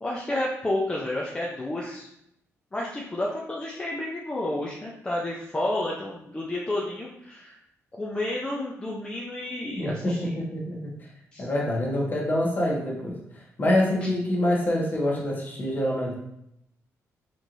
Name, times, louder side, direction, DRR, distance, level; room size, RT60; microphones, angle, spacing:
voice 1, 0.0-2.1 2.7-7.5 7.9-10.3 11.3-11.5, left 1 dB, 20° left, -3 dB, 0.5 m, -30 dB
voice 2, 9.8-10.9 11.4-13.2 13.6-16.1, left 1 dB, 35° left, -3 dB, 1.1 m, -26 dB
4.3 x 3.0 x 2.6 m, 0.78 s
cardioid pair, 120°, 6 cm